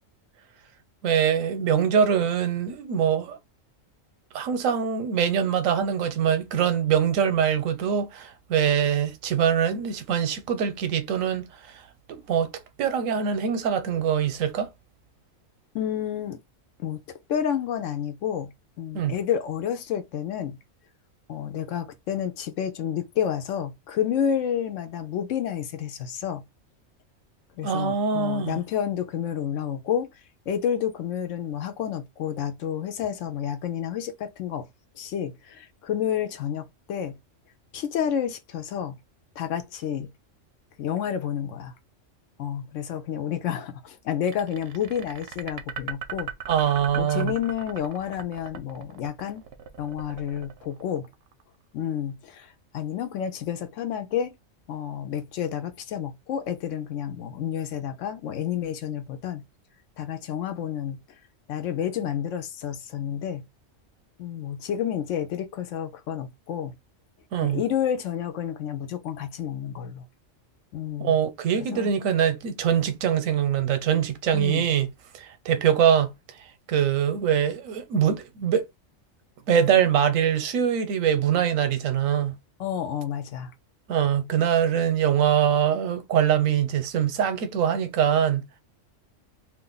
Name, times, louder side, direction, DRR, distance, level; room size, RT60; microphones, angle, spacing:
voice 1, 1.0-3.4 4.3-11.8 12.1-12.5 12.8-14.7 18.9-19.1 27.6-28.6 46.5-47.4 67.3-67.6 71.0-74.9 75.1-76.1 76.7-78.7 79.5-82.3 83.9-88.4, right 8 dB, 90° right, 1.1 m, -23 dB
voice 2, 15.7-16.4 16.8-17.0 17.3-20.6 21.3-26.4 27.6-30.1 30.5-34.7 35.0-37.2 37.7-39.0 39.4-40.1 40.8-41.7 42.4-46.3 47.0-49.4 49.8-51.1 51.7-54.4 54.7-59.4 60.0-61.0 61.5-63.4 64.2-66.7 67.4-70.0 70.7-71.2 71.6-71.9 74.3-74.7 82.6-83.5, left 9 dB, 75° left, 1.0 m, -30 dB
sound 1, 44.3-51.4, right 8 dB, 60° right, 0.7 m, -38 dB
2.5 x 2.5 x 3.7 m
omnidirectional pair, 1.4 m